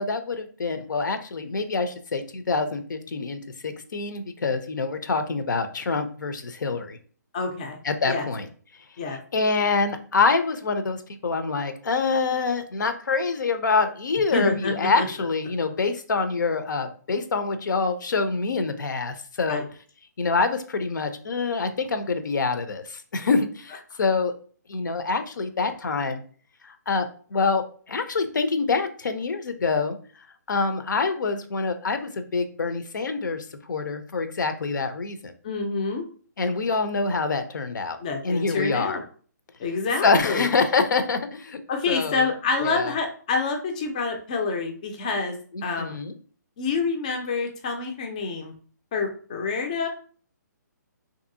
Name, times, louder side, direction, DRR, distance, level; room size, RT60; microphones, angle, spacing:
voice 1, 0.0-7.0 7.8-8.5 9.3-19.6 20.2-24.3 24.7-26.2 26.6-30.0 30.5-35.3 36.4-38.0 38.2-39.0 40.0-41.6 41.9-42.3 42.6-42.9 45.5-46.1, left 4 dB, 80° left, 9 dB, 0.5 m, -26 dB
voice 2, 7.3-7.8 8.1-8.3 9.0-9.2 14.3-15.1 19.5-19.6 35.4-36.0 38.0-39.0 39.6-40.5 41.7-45.9 46.6-48.5 48.9-49.9, left 4 dB, 25° left, 3 dB, 0.3 m, -27 dB
2.7 x 2.6 x 2.5 m, 0.43 s
hypercardioid pair, 165°, 10 cm